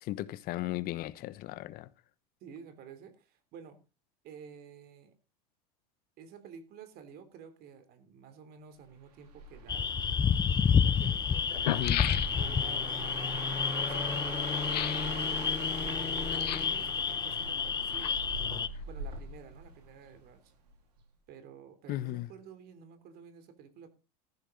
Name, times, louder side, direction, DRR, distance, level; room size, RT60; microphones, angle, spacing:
voice 1, 0.0-1.9 11.7-12.1 21.9-22.3, left 15 dB, 45° left, 1.1 m, -36 dB
voice 2, 2.4-3.8 4.2-5.2 6.2-9.9 10.7-11.7 12.3-18.3 18.8-20.5 21.3-23.9, right 7 dB, 50° right, 3.3 m, -51 dB
sound 1, 9.2-20.3 20.7-21.0, right 2 dB, 85° right, 4.2 m, -42 dB
sound 2, 9.7-18.7, left 6 dB, 20° left, 0.8 m, -30 dB
sound 3, 10.1-10.2 11.1-11.2 11.4-12.7 14.6-15.1 16.3-16.8 17.7-18.5 18.8-18.9, left 13 dB, 85° left, 1.1 m, -35 dB
14.0 x 11.5 x 4.0 m
hypercardioid pair, 100°, 20 cm